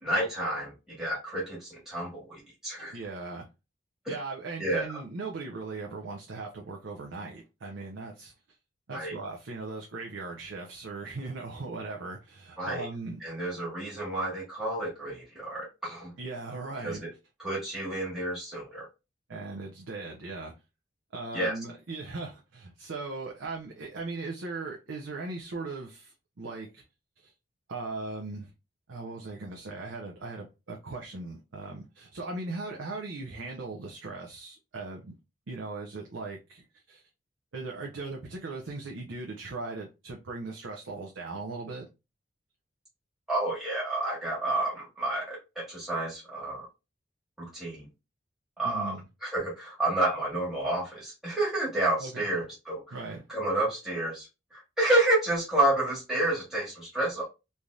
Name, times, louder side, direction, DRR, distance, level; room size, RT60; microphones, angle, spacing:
voice 1, 0.0-3.0 4.0-4.1 4.6-5.0 8.9-9.1 12.6-12.9 13.2-16.1 16.8-17.1 17.4-18.9 21.3-21.6 43.3-46.7 47.4-47.9 48.6-49.0 49.2-53.0 53.3-57.2, right 1 dB, 5° right, 1.2 m, -30 dB
voice 2, 2.9-3.5 4.1-8.3 8.9-13.2 16.2-17.0 19.3-20.5 21.1-26.8 27.2-27.3 27.7-28.5 28.9-35.1 35.5-37.0 37.5-41.9 48.6-49.0 52.0-52.2 52.9-53.2, right 3 dB, 85° right, 0.6 m, -38 dB
3.3 x 2.7 x 2.3 m
head